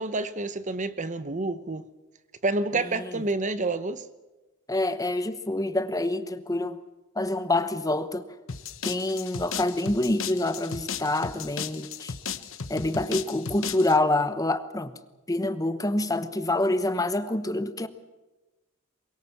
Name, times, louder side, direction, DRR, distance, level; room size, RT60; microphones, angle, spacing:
voice 1, 0.0-1.9 2.4-4.0, right 2 dB, 35° right, 0.9 m, -28 dB
voice 2, 2.7-3.2 4.7-6.8 7.1-8.3 8.8-12.1 12.7-14.9 15.3-17.9, left 2 dB, 15° left, 1.0 m, -27 dB
sound 1, 8.5-14.0, left 6 dB, 65° left, 1.1 m, -35 dB
23.5 x 22.0 x 7.2 m
head